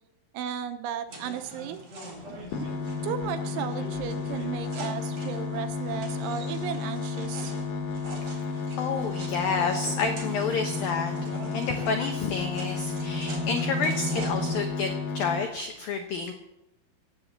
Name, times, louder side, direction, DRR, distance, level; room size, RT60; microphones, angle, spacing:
voice 1, 0.3-1.8 3.0-7.5, right 9 dB, 80° right, 8 dB, 3.0 m, -35 dB
sound 1, 1.1-14.6, right 1 dB, 35° right, 4.0 m, -39 dB
sound 2, 2.5-15.4, left 4 dB, 65° left, 4.1 m, -32 dB
voice 2, 8.8-11.1 11.5-14.9 15.1-16.3, left 5 dB, 85° left, 4 dB, 2.0 m, -29 dB
17.5 x 7.9 x 8.0 m, 0.90 s
omnidirectional pair, 5.9 m